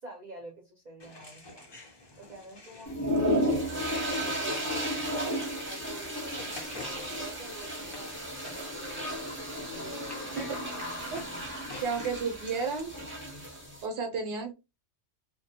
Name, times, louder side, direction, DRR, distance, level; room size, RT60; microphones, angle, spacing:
voice 1, 0.0-1.7 2.2-3.7 4.1-9.1 9.7-10.9, right 2 dB, 50° right, -1 dB, 0.6 m, -47 dB
sound 1, 1.0-12.8, left 3 dB, 45° left, 0.3 m, -50 dB
sound 2, 2.9-13.8, equal, 10° right, 0.7 m, -33 dB
sound 3, 8.2-11.7, right 1 dB, 20° left, 0.9 m, -49 dB
voice 2, 11.8-12.9 13.8-14.5, right 5 dB, 75° right, 5 dB, 0.8 m, -32 dB
2.3 x 2.1 x 2.7 m, 0.25 s
omnidirectional pair, 1.2 m